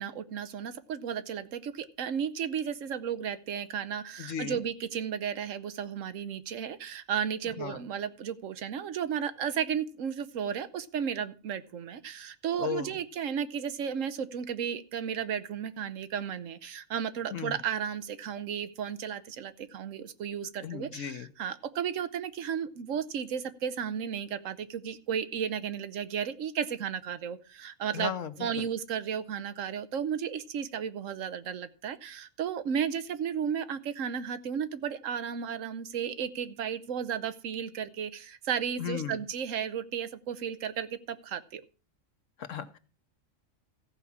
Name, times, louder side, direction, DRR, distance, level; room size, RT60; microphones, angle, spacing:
voice 1, 0.0-28.1 28.4-41.6, right 8 dB, 75° right, 13 dB, 1.1 m, -34 dB
voice 2, 4.2-4.6 7.6-7.8 12.6-12.9 17.3-17.5 20.6-21.3 27.9-28.7 38.8-39.2 42.5-42.8, left 8 dB, 70° left, 10 dB, 1.2 m, -36 dB
14.5 x 4.9 x 7.1 m, 0.37 s
omnidirectional pair, 1.4 m